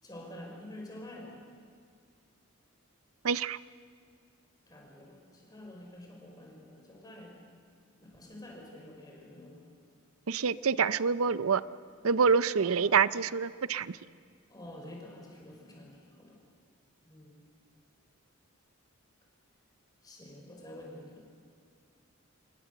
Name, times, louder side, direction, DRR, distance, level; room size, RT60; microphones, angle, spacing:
voice 1, 0.0-1.4 4.7-7.4 8.0-9.6 12.5-12.8 14.5-16.4 17.0-17.4 20.0-21.2, left 1 dB, 20° left, 0 dB, 5.1 m, -48 dB
voice 2, 3.2-3.6 10.3-11.6 12.0-14.0, right 6 dB, 80° right, 16 dB, 0.6 m, -26 dB
27.5 x 22.0 x 6.7 m, 2.1 s
head